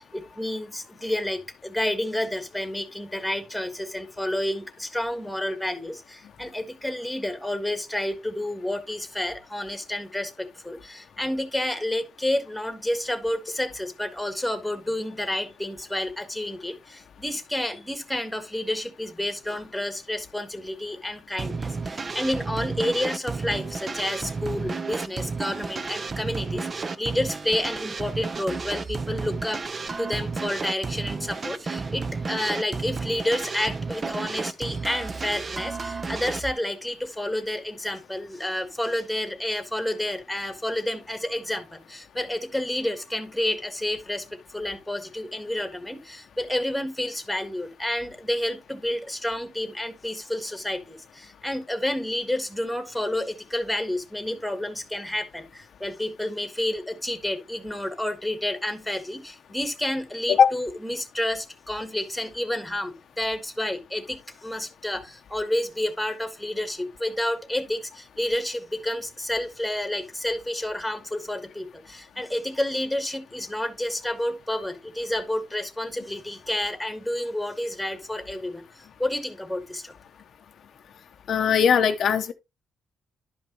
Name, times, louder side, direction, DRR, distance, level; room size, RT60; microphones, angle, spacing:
voice 1, 0.0-29.6 30.0-79.9, left 1 dB, ahead, 1.5 m, -30 dB
sound 1, 21.4-36.5, right 4 dB, 35° right, 0.6 m, -32 dB
voice 2, 81.3-82.3, left 7 dB, 60° left, 0.7 m, -19 dB
11.5 x 5.2 x 3.0 m
cardioid pair, 90°, 0 cm